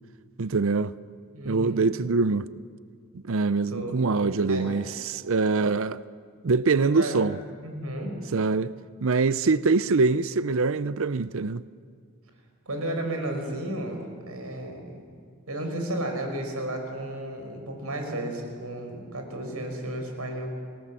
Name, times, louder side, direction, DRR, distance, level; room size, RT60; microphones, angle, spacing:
voice 1, 0.4-0.9 1.4-2.5 3.2-6.0 6.4-7.4 8.3-8.7 9.0-11.6, right 4 dB, 65° right, 0.6 m, -24 dB
voice 2, 1.3-1.9 3.7-4.1 4.5-4.7 6.8-7.2 7.6-8.2 12.7-15.0 15.5-20.5, right 1 dB, 80° right, 5.2 m, -33 dB
28.5 x 19.0 x 7.6 m
head